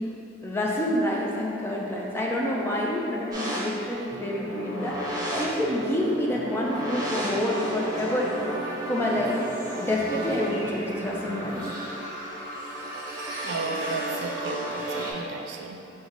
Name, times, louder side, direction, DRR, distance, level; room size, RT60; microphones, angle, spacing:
voice 1, 0.4-4.9 5.3-8.3 8.9-9.4 9.8-11.6, left 1 dB, 15° left, -3 dB, 0.5 m, -27 dB
sound 1, 3.3-15.1, right 1 dB, 20° right, 1.0 m, -34 dB
sound 2, 4.1-11.7, right 1 dB, 30° left, 1.3 m, -42 dB
voice 2, 13.4-15.9, right 3 dB, 80° right, 2 dB, 0.4 m, -34 dB
5.2 x 2.2 x 4.6 m, 2.9 s
head